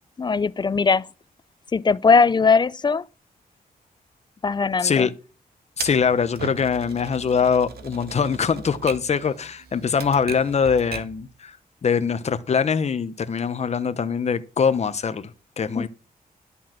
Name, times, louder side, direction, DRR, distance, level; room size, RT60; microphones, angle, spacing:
voice 1, 0.2-1.1 1.7-3.1 4.4-5.1 15.8-15.9, left 5 dB, 30° left, 0.5 m, -19 dB
voice 2, 5.8-11.6 11.8-15.3 15.6-15.9, left 6 dB, 45° left, 0.9 m, -23 dB
Typewriter, 5.8-11.2, right 6 dB, 85° right, 1.7 m, -38 dB
11.0 x 7.2 x 5.9 m
wide cardioid pair, 105°, 16 cm